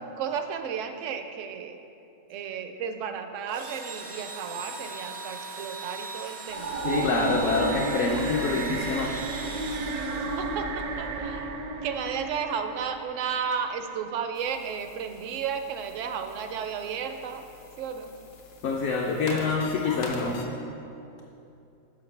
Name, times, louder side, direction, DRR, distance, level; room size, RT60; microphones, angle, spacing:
voice 1, 0.2-1.8 2.3-7.6 10.2-17.4 17.8-18.1, right 7 dB, 70° right, 7 dB, 0.9 m, -33 dB
Engine / Drill, 3.5-10.8, right 2 dB, 45° right, 0.6 m, -39 dB
sound 1, 6.5-13.6, right 3 dB, 90° right, 1.2 m, -32 dB
voice 2, 6.8-9.5 18.6-20.5, left 4 dB, 65° left, -1 dB, 0.9 m, -27 dB
sound 2, 14.3-20.4, left 3 dB, 85° left, 1.3 m, -44 dB
10.5 x 6.5 x 3.3 m, 2.7 s
omnidirectional pair, 1.5 m